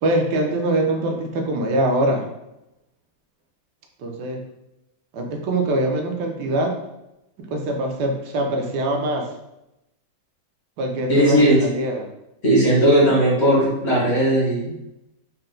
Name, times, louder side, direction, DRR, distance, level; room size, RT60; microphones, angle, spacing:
voice 1, 0.0-2.3 4.0-4.4 5.1-6.8 7.5-9.3 10.8-12.1, right 1 dB, 75° right, 2 dB, 1.2 m, -23 dB
voice 2, 11.1-11.6 12.4-14.7, right 1 dB, 50° left, -5 dB, 1.0 m, -17 dB
4.3 x 2.2 x 3.7 m, 0.90 s
omnidirectional pair, 1.9 m